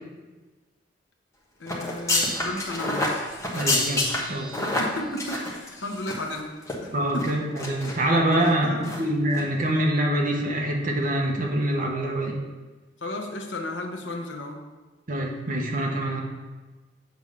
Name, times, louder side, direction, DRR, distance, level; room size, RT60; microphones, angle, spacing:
voice 1, 1.6-3.2 4.8-6.5 6.8-7.4 8.4-9.0 13.0-14.6 16.1-16.2, left 1 dB, 80° left, 3 dB, 1.1 m, -34 dB
sound 1, 1.7-6.4 6.6-6.7 7.2-7.9 8.3-8.5 8.8-9.0 9.3-9.4, left 2 dB, 15° left, 1.3 m, -28 dB
voice 2, 3.5-4.6 6.9-12.4 15.1-16.2, right 1 dB, 45° right, -1 dB, 1.2 m, -25 dB
8.0 x 3.5 x 6.5 m, 1.2 s
head